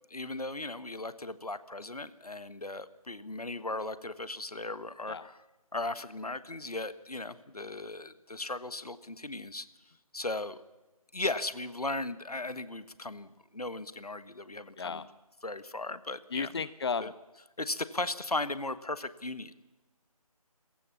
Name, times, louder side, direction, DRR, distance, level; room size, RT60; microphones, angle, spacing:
voice 1, 0.1-5.4 5.7-9.7 10.1-10.6 11.1-15.0 15.4-16.6 17.0-17.1 17.6-19.5, left 2 dB, 80° left, 14 dB, 1.4 m, -37 dB
voice 2, 14.8-15.1 16.3-17.1, left 5 dB, 45° left, 17 dB, 0.6 m, -34 dB
27.5 x 15.0 x 7.2 m, 1.1 s
figure-of-eight pair, 150°, 19 cm